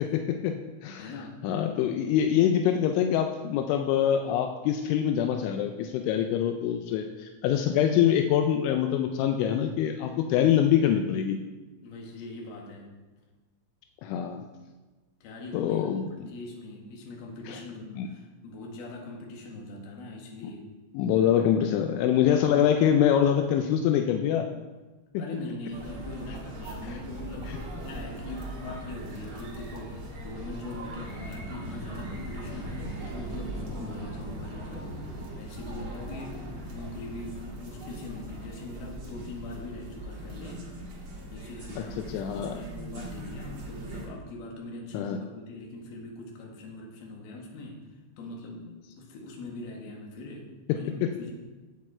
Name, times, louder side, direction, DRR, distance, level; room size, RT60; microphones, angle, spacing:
voice 1, 0.0-1.1 1.4-11.4 14.0-14.4 15.5-16.1 17.5-17.6 18.0-18.1 20.9-24.4 25.1-25.2 27.5-27.6 42.1-42.6 44.9-45.2 51.0-51.1, left 9 dB, 85° left, 5 dB, 3.0 m, -24 dB
voice 2, 1.0-1.5 11.8-13.0 15.2-20.7 25.2-40.7 41.3-47.8 48.2-51.3, left 2 dB, 65° left, 0 dB, 3.1 m, -41 dB
sound 1, 25.7-44.1, right 1 dB, 75° right, 1.1 m, -39 dB
9.1 x 8.4 x 4.3 m, 1.2 s
omnidirectional pair, 5.4 m